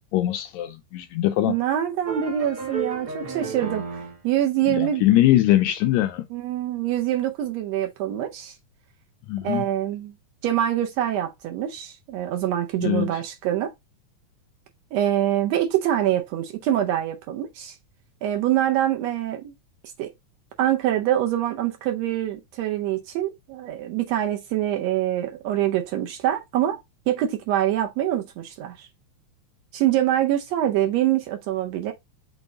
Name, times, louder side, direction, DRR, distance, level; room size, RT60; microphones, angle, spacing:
voice 1, 0.1-1.5 4.8-6.2 9.3-9.6 12.8-13.1, left 14 dB, 80° left, 1.7 m, -21 dB
voice 2, 1.5-5.1 6.3-8.6 9.4-10.1 10.4-13.7 14.9-17.8 18.2-19.6 20.0-20.1 20.6-26.8 27.1-28.9 29.7-31.9, right 12 dB, 75° right, 1.7 m, -25 dB
sound 1, 2.0-4.2, right 4 dB, 45° right, 1.1 m, -32 dB
6.1 x 2.2 x 3.6 m
omnidirectional pair, 3.3 m